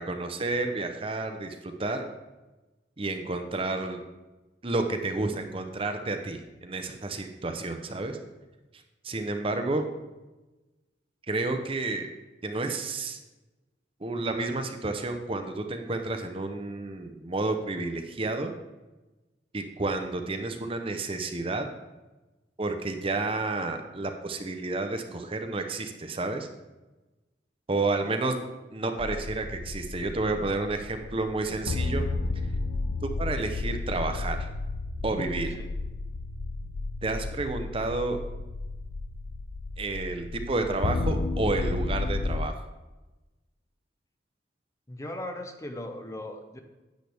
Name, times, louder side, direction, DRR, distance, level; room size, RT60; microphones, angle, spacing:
voice 1, 0.0-2.0 3.0-4.0 4.6-8.2 9.0-9.9 11.3-12.1 12.4-13.2 14.0-18.5 19.5-21.7 22.6-26.5 27.7-28.4 28.7-32.1 33.0-34.5 35.0-35.6 37.0-38.2 39.8-42.5, right 2 dB, 30° right, 6 dB, 0.7 m, -30 dB
sound 1, 29.0-42.5, left 3 dB, 65° left, 0.5 m, -32 dB
voice 2, 44.9-46.6, left 1 dB, 15° left, 6 dB, 0.6 m, -38 dB
10.5 x 8.0 x 3.4 m, 1.1 s
head